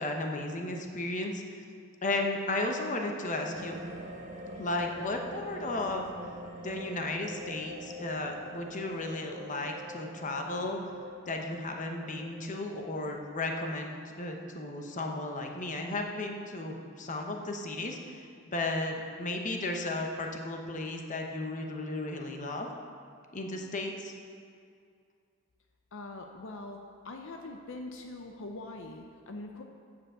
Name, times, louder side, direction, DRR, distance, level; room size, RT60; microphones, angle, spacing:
voice 1, 0.0-1.6 2.0-3.8 4.6-6.0 6.6-10.8 11.3-22.7 23.3-24.1, left 2 dB, 40° left, 3 dB, 0.9 m, -34 dB
sound 1, 3.5-13.3, equal, 35° right, 1.0 m, -45 dB
voice 2, 25.9-26.8 27.0-29.6, left 2 dB, 65° left, 3 dB, 0.7 m, -42 dB
8.0 x 6.9 x 7.7 m, 2.3 s
head